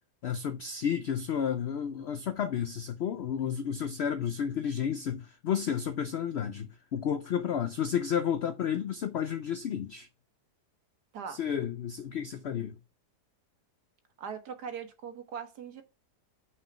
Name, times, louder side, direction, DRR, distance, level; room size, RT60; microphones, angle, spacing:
voice 1, 0.2-10.1 11.3-12.8, left 8 dB, 90° left, 0.5 m, -31 dB
voice 2, 14.2-15.8, right 7 dB, 75° right, 1.7 m, -40 dB
6.0 x 4.8 x 5.9 m
omnidirectional pair, 1.8 m